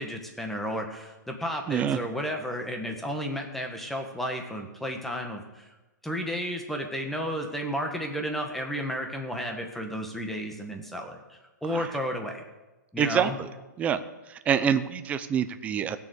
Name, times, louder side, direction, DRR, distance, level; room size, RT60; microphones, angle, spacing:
voice 1, 0.0-5.7 6.0-12.4 12.9-13.4, equal, ahead, 3 dB, 1.5 m, -32 dB
voice 2, 1.7-2.0 11.7-11.8 13.0-13.5 13.8-14.0 14.3-16.0, right 8 dB, 15° right, 10 dB, 0.6 m, -26 dB
16.0 x 7.0 x 8.0 m, 1.1 s
hypercardioid pair, 150°, 10 cm